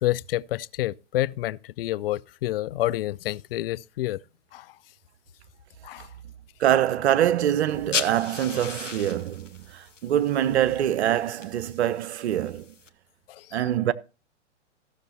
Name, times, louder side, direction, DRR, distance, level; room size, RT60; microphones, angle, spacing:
voice 1, 0.0-4.2 4.5-4.7 5.8-6.1 13.3-13.6, left 15 dB, 50° left, 0.5 m, -28 dB
voice 2, 6.6-12.7 13.5-13.9, right 11 dB, 60° right, 0.8 m, -24 dB
sound 1, 7.7-12.9, left 5 dB, 90° left, 1.1 m, -36 dB
15.0 x 6.6 x 4.2 m
figure-of-eight pair, 110°, 36 cm